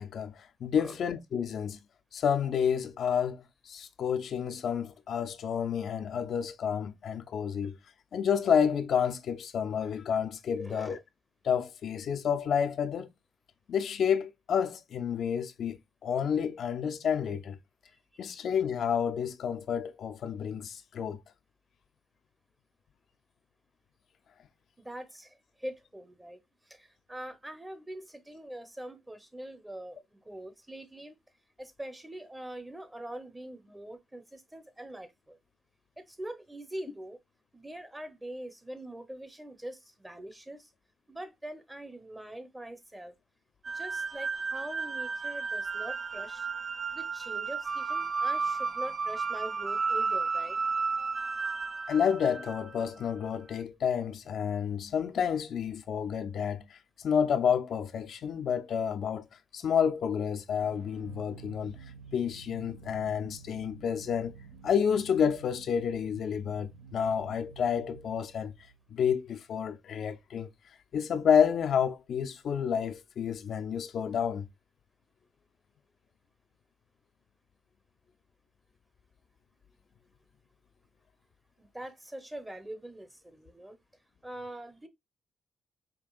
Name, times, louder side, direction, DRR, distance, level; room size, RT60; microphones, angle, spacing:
voice 1, 0.0-1.8 2.1-7.8 8.1-11.0 11.4-13.1 13.7-17.6 18.2-21.2 51.9-59.3 59.5-61.7 62.1-64.3 64.6-68.5 68.9-70.5 70.9-74.5, left 7 dB, 65° left, 0.5 m, -30 dB
voice 2, 10.5-11.0 17.9-18.4 24.8-26.4 26.7-31.2 31.6-35.4 36.0-37.2 37.5-40.7 41.1-43.1 43.7-46.5 46.9-50.6 81.6-83.8 84.2-84.9, right 1 dB, 10° right, 0.8 m, -43 dB
sound 1, 43.6-52.8, right 4 dB, 35° right, 0.4 m, -33 dB
sound 2, 60.6-69.3, right 6 dB, 75° right, 1.1 m, -51 dB
5.1 x 2.8 x 2.3 m
cardioid pair, 90°, 0 cm